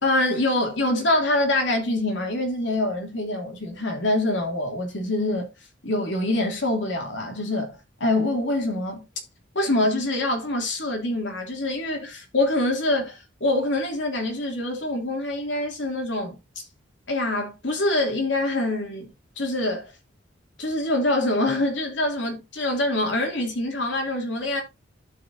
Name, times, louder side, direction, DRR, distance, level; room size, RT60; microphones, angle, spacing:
voice 1, 0.0-5.5 5.8-9.1 9.5-16.6 17.1-19.1 19.4-19.9 20.6-24.6, left 1 dB, 65° left, 2.7 m, -25 dB
12.5 x 5.0 x 2.7 m
head